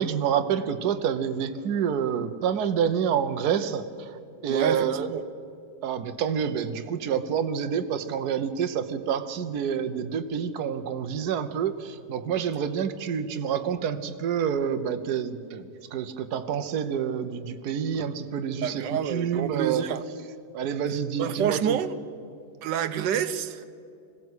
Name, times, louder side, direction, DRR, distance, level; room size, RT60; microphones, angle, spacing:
voice 1, 0.0-4.1 4.4-5.1 5.8-19.9 20.5-21.8, right 7 dB, 65° right, 1.4 m, -28 dB
voice 2, 4.5-5.2 18.6-20.0 21.2-22.0 22.6-23.7, right 9 dB, 90° right, 1.5 m, -28 dB
21.0 x 16.5 x 8.2 m
omnidirectional pair, 1.9 m